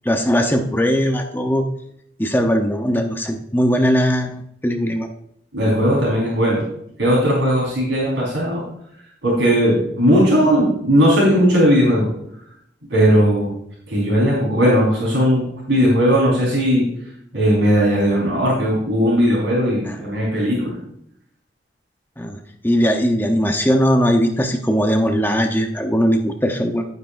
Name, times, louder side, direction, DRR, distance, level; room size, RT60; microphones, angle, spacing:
voice 1, 0.0-1.6 2.2-5.1 19.9-20.0 22.2-26.9, equal, 10° left, 4 dB, 0.8 m, -19 dB
voice 2, 5.5-6.6 7.0-8.6 9.2-12.1 12.9-13.5 13.9-16.9 17.3-20.8, equal, 85° right, -4 dB, 4.4 m, -17 dB
11.5 x 9.6 x 2.6 m, 0.73 s
head